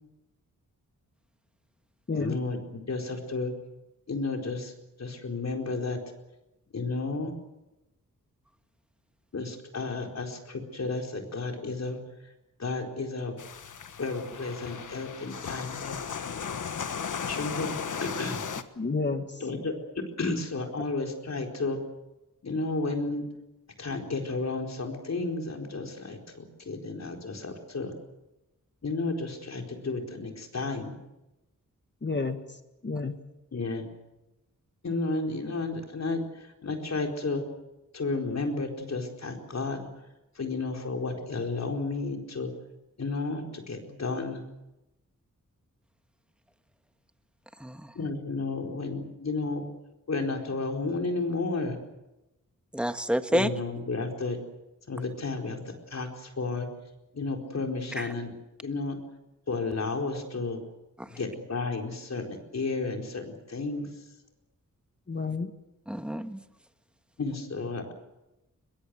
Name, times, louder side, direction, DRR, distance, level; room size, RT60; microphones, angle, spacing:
voice 1, 2.1-3.5 4.1-4.7 5.0-6.0 6.7-7.3 9.3-12.0 12.6-13.4 14.0-16.1 17.3-18.4 19.4-19.7 20.2-21.8 22.4-23.2 23.8-27.9 28.8-30.9 33.5-33.9 34.8-36.2 36.6-37.4 37.9-39.9 40.4-42.5 43.0-44.4 47.9-49.6 50.1-51.8 53.3-54.4 54.9-56.7 57.1-58.3 58.6-59.0 59.5-60.6 61.2-63.9 67.2-67.9, left 3 dB, 55° left, 2 dB, 4.5 m, -32 dB
sound 1, 13.4-18.6, left 6 dB, 70° left, 1.4 m, -36 dB
voice 2, 18.8-19.3 32.0-32.4 32.8-33.1 65.1-65.5, left 4 dB, 35° left, 7 dB, 1.7 m, -30 dB
voice 3, 47.6-47.9 52.7-53.5 57.9-58.1 61.0-61.2 65.9-66.4, equal, 5° right, 8 dB, 1.4 m, -29 dB
22.5 x 22.0 x 8.1 m, 0.94 s
wide cardioid pair, 115°, 32 cm